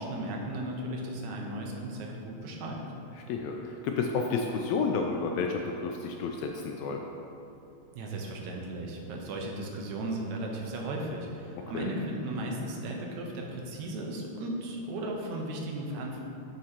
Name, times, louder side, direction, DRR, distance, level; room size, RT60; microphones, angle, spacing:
voice 1, 0.0-2.8 8.0-16.2, right 1 dB, 80° right, 0 dB, 2.2 m, -36 dB
voice 2, 3.3-7.0 11.7-11.9, left 4 dB, 80° left, 2 dB, 1.7 m, -31 dB
11.0 x 6.1 x 2.9 m, 2.7 s
omnidirectional pair, 3.3 m